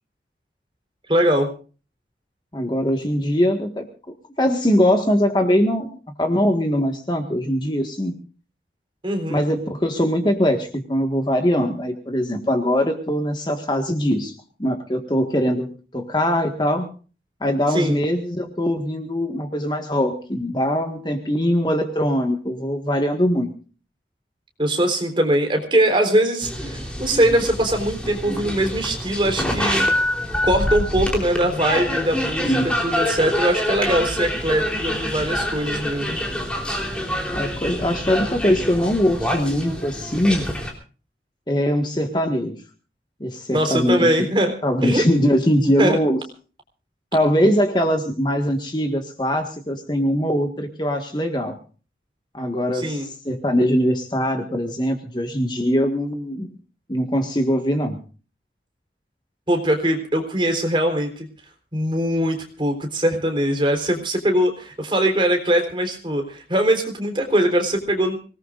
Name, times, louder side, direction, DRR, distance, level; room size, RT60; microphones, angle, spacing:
voice 1, 1.1-1.5 9.0-9.4 17.7-18.0 24.6-30.1 30.4-36.2 43.5-44.6 44.8-45.0 45.8-46.0 52.7-53.1 59.5-61.3 61.7-68.2, right 1 dB, 30° right, 4 dB, 3.9 m, -21 dB
voice 2, 2.5-3.9 4.4-5.9 6.2-8.1 9.3-14.3 14.6-16.9 17.4-23.5 32.4-32.6 37.3-40.5 41.5-42.5 43.2-44.3 44.6-46.2 47.1-51.6 52.3-56.5 56.9-58.0, equal, 25° left, 5 dB, 1.6 m, -21 dB
sound 1, 26.4-40.7, equal, 5° left, 3.6 m, -26 dB
25.0 x 19.0 x 2.5 m, 0.38 s
head